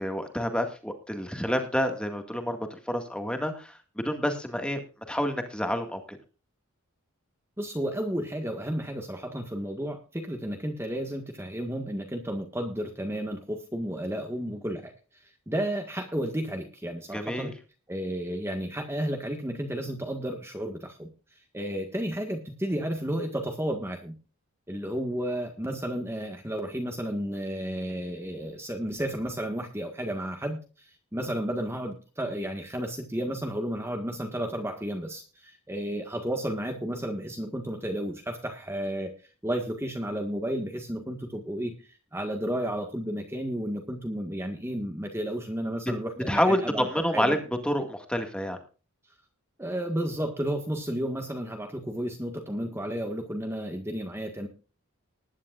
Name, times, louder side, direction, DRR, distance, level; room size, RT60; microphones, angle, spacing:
voice 1, 0.0-4.8 5.1-6.2 17.1-17.5 46.3-47.4 47.6-48.6, equal, 5° left, 5 dB, 1.9 m, -28 dB
voice 2, 7.6-14.9 15.2-17.5 17.9-21.1 21.5-24.1 24.7-39.1 39.4-47.4 49.6-54.5, right 1 dB, 10° right, 4 dB, 1.6 m, -32 dB
20.0 x 11.0 x 2.5 m, 0.35 s
head